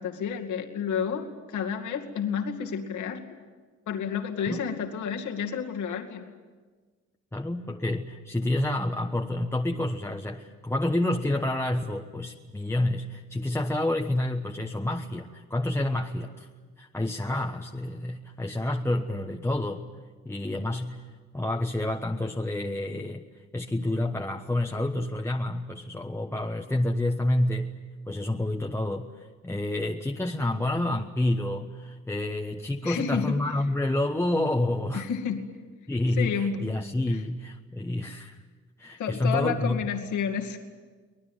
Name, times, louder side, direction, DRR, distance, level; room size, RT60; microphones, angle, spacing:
voice 1, 0.0-3.3 3.9-6.3 32.8-33.4 34.9-35.4 36.2-36.6 37.1-37.2 39.0-40.6, left 7 dB, 75° left, 2 dB, 2.5 m, -30 dB
voice 2, 7.3-16.5 16.8-19.9 20.2-21.1 21.3-23.3 23.5-27.8 28.1-35.1 35.9-38.4 38.8-39.8, left 1 dB, 10° left, 2 dB, 1.2 m, -28 dB
24.5 x 18.5 x 9.2 m, 1.4 s
cardioid pair, 90°, 30 cm